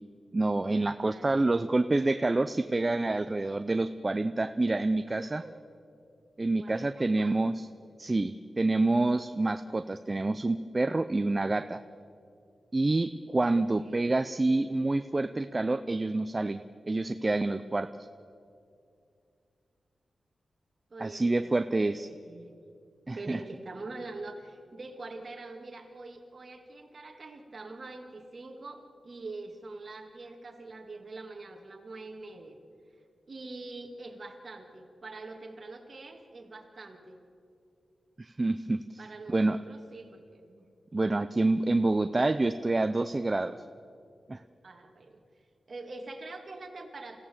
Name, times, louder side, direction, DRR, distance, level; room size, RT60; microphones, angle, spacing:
voice 1, 0.3-5.4 6.4-7.7 8.0-11.8 12.7-16.6 16.9-17.9 21.0-22.1 23.1-23.4 38.2-38.8 39.3-39.6 40.9-43.6 44.3-44.4, right 2 dB, 25° right, 10 dB, 0.5 m, -27 dB
voice 2, 1.1-1.7 5.2-5.6 6.5-7.5 13.5-14.2 20.9-21.5 21.8-22.6 23.1-32.6 33.3-37.2 39.0-40.7 44.6-47.2, right 2 dB, 40° right, 3 dB, 2.4 m, -45 dB
27.5 x 16.0 x 7.3 m, 2.5 s
wide cardioid pair, 145°, 0 cm